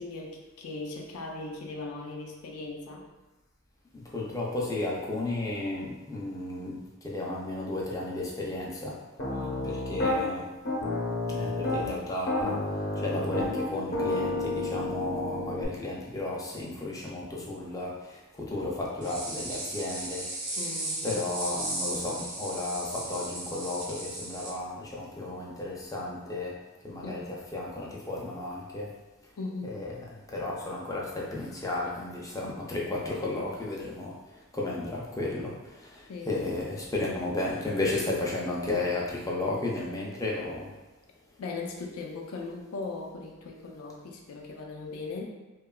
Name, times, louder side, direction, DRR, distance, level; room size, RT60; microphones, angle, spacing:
voice 1, 0.0-3.0 9.3-9.8 20.6-21.1 27.0-27.3 29.4-29.7 36.1-36.3 41.4-45.2, left 3 dB, 90° left, 1 dB, 0.4 m, -39 dB
voice 2, 3.9-9.0 9.6-10.5 11.3-12.6 13.0-20.3 21.0-26.6 26.8-28.9 29.6-34.1 34.5-40.7, left 2 dB, 15° left, -3 dB, 0.3 m, -33 dB
Piano, 9.2-10.2 10.6-11.9 12.3-15.7, left 2 dB, 45° left, 0.7 m, -30 dB
sound 1, 19.0-24.5, right 1 dB, 85° right, 0.9 m, -36 dB
2.8 x 2.2 x 2.2 m, 1.1 s
head